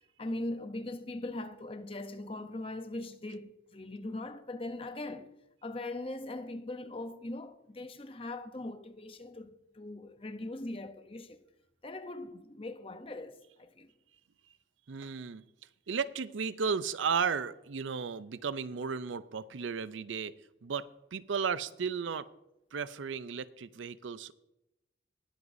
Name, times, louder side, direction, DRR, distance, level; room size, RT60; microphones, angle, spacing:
voice 1, 0.2-5.3 5.6-11.4 11.8-13.9, left 2 dB, 30° left, 0.7 m, -40 dB
voice 2, 14.9-15.4 15.9-20.3 20.6-22.3 22.7-24.3, right 6 dB, 85° right, 0.5 m, -34 dB
20.5 x 8.0 x 2.7 m
head